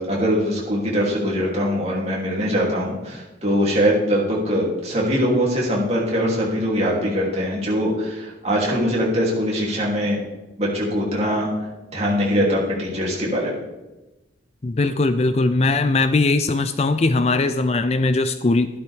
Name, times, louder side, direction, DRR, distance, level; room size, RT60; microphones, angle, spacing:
voice 1, 0.0-10.2 10.6-11.5 11.9-13.6, equal, 35° right, -4 dB, 2.9 m, -22 dB
voice 2, 14.6-18.7, left 3 dB, 35° left, 10 dB, 0.4 m, -20 dB
13.5 x 11.5 x 3.5 m, 1.1 s
head